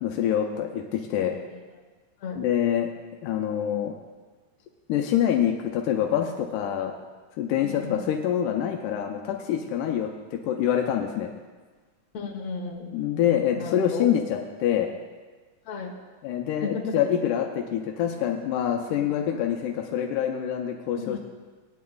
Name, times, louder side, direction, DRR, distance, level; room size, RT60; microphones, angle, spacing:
voice 1, 0.0-1.4 2.4-2.9 3.2-3.9 4.9-6.9 7.4-11.3 12.9-14.9 16.2-21.2, left 10 dB, 85° left, 2 dB, 2.2 m, -26 dB
voice 2, 7.6-8.0 12.1-12.9 13.6-14.1 15.7-16.0 16.6-17.0 18.9-19.2 20.9-21.2, left 5 dB, 60° left, -1 dB, 2.2 m, -34 dB
18.5 x 9.2 x 2.3 m, 1.3 s
omnidirectional pair, 3.6 m